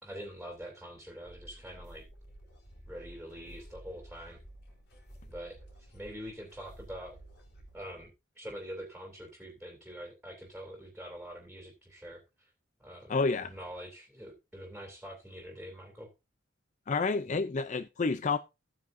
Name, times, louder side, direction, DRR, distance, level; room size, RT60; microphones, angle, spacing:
voice 1, 0.0-2.1 2.9-4.4 5.2-7.2 7.7-12.5 12.8-16.1 17.3-17.4, equal, 5° right, 2.9 m, -45 dB
sound 1, 1.3-7.8, right 1 dB, 55° left, 5.0 m, -52 dB
voice 2, 13.1-13.5 16.9-18.4, left 4 dB, 35° left, 0.4 m, -29 dB
14.5 x 9.7 x 2.6 m
head